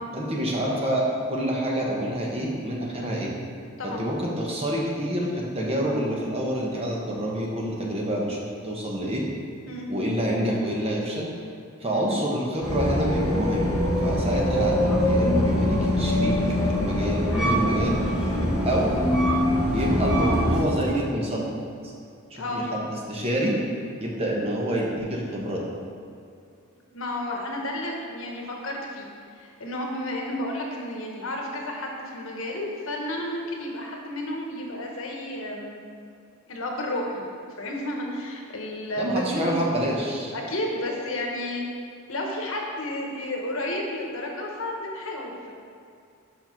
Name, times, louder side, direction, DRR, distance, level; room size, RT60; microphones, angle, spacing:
voice 1, 0.1-3.3 3.8-9.2 9.9-11.3 11.8-13.7 14.0-16.3 16.7-18.0 18.6-18.9 19.7-21.4 21.8-21.9 22.3-23.6 24.0-25.6 39.0-40.3, equal, 25° right, -2 dB, 1.0 m, -27 dB
voice 2, 11.8-12.2 18.3-18.6 22.3-22.7 26.9-29.1 29.4-35.8 36.5-37.3 37.6-39.5 40.3-41.6 42.1-45.5, left 1 dB, 65° left, 0 dB, 1.1 m, -32 dB
sound 1, 12.6-20.6, equal, 5° right, 1.0 m, -23 dB
5.5 x 5.3 x 5.8 m, 2.5 s
head